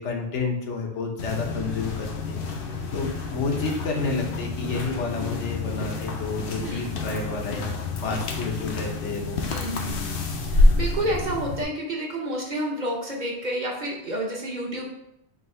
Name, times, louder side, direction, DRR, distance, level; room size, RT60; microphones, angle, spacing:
voice 1, 0.0-2.4 2.9-7.7 8.0-9.4, left 4 dB, 80° left, 0 dB, 1.1 m, -30 dB
sound 1, 1.2-11.6, left 2 dB, 60° left, 0.7 m, -27 dB
voice 2, 9.5-14.9, right 1 dB, 45° right, -2 dB, 0.8 m, -30 dB
3.7 x 2.7 x 4.2 m, 0.79 s
omnidirectional pair, 1.2 m